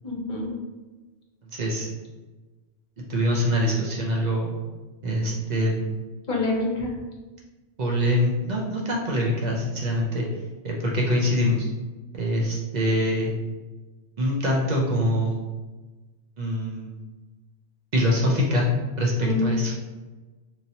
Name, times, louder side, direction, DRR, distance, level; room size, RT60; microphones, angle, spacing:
voice 1, 0.0-0.5 6.3-6.9 19.2-19.5, left 3 dB, 45° left, -2 dB, 0.9 m, -26 dB
voice 2, 1.5-1.9 3.1-4.5 5.0-5.9 7.8-10.2 10.6-11.7 12.1-13.3 14.2-15.4 16.4-16.9 17.9-18.7 19.0-19.7, equal, 50° right, -2 dB, 0.5 m, -24 dB
3.1 x 2.7 x 2.7 m, 1.2 s
omnidirectional pair, 1.2 m